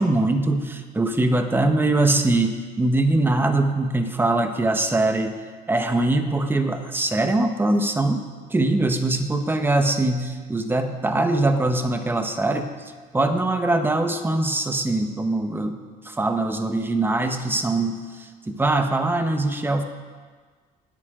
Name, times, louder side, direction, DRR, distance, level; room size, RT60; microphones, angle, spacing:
voice 1, 0.0-5.3 5.7-8.2 8.5-12.7 13.1-15.8 16.0-19.8, right 2 dB, 10° right, 6 dB, 1.1 m, -22 dB
19.5 x 9.1 x 3.8 m, 1.5 s
cardioid pair, 110°, 17 cm